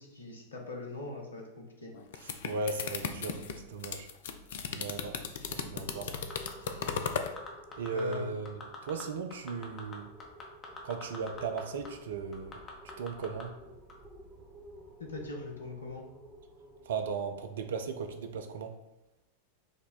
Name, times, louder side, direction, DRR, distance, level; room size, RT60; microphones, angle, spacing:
voice 1, 0.0-1.9 7.9-8.3 15.0-16.0, left 3 dB, 75° left, 1 dB, 0.8 m, -41 dB
sound 1, 1.9-7.3, left 6 dB, 60° left, 0.4 m, -36 dB
voice 2, 2.5-3.4 3.7-4.1 4.7-5.2 5.5-6.1 7.8-10.1 10.8-12.6 13.0-13.5 16.9-18.7, right 4 dB, 60° right, 7 dB, 0.4 m, -36 dB
sound 2, 5.4-18.1, right 1 dB, 25° right, 1.1 m, -53 dB
sound 3, 6.1-6.9 7.3-8.2 8.5-9.0 9.3-11.6 11.9-12.0 12.3-13.4 13.9-14.0, left 4 dB, 25° left, 0.8 m, -44 dB
5.0 x 2.2 x 4.0 m, 0.96 s
figure-of-eight pair, 90°, 0 cm